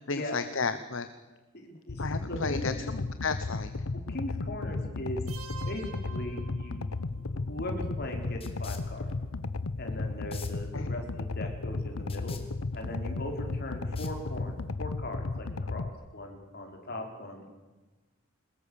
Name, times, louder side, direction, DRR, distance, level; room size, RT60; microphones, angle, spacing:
voice 1, 0.1-1.1 2.0-3.7 10.7-10.9, left 4 dB, 65° left, 10 dB, 1.0 m, -33 dB
voice 2, 1.5-2.7 3.9-5.2 5.7-6.8 7.2-9.1 9.8-12.4 12.7-17.5, left 1 dB, 50° left, 2 dB, 4.4 m, -39 dB
sound 1, 1.9-15.9, left 3 dB, 85° left, 0.9 m, -34 dB
sound 2, 5.3-7.2, right 8 dB, 90° right, 2.9 m, -47 dB
sound 3, 7.0-14.7, left 6 dB, 25° left, 2.4 m, -52 dB
22.5 x 20.5 x 7.1 m, 1.2 s
head